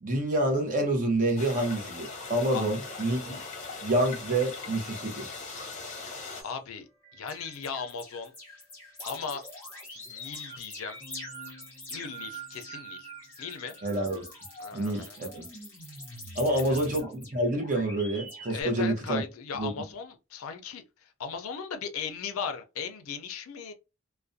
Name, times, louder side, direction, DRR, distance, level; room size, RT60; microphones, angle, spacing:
voice 1, 0.0-3.4 3.8-5.3 13.8-14.3 14.7-15.4 16.4-19.2 19.6-19.7, right 1 dB, 35° right, 0.6 m, -28 dB
sound 1, 1.4-6.4, left 4 dB, 30° left, 0.6 m, -40 dB
sound 2, 6.0-6.5 7.0-18.6, equal, 10° left, 1.0 m, -44 dB
voice 2, 6.4-8.3 9.1-9.5 10.0-11.0 11.9-13.1 13.4-13.8 14.6-15.2 16.6-16.8 18.5-23.7, left 6 dB, 80° left, 0.4 m, -37 dB
2.3 x 2.1 x 2.5 m
head